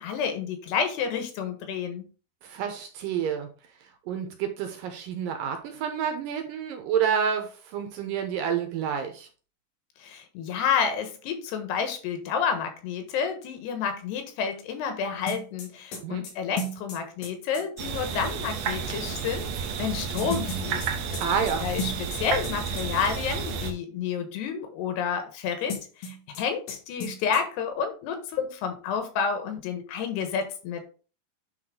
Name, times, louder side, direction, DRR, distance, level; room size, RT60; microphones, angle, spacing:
voice 1, 0.0-2.1 10.0-20.9 21.6-30.8, left 6 dB, 90° left, 7 dB, 3.4 m, -30 dB
voice 2, 2.4-3.5 4.1-9.3 15.9-16.2 21.2-21.7, right 7 dB, 70° right, 6 dB, 2.3 m, -29 dB
sound 1, 15.3-17.6 20.2-22.5 22.8-22.9 25.7-26.4 26.7-26.8 27.0-27.4, left 2 dB, 65° left, 3.7 m, -34 dB
sound 2, 17.8-23.7, right 6 dB, 90° right, 1.4 m, -31 dB
9.7 x 4.2 x 3.8 m, 0.37 s
omnidirectional pair, 4.6 m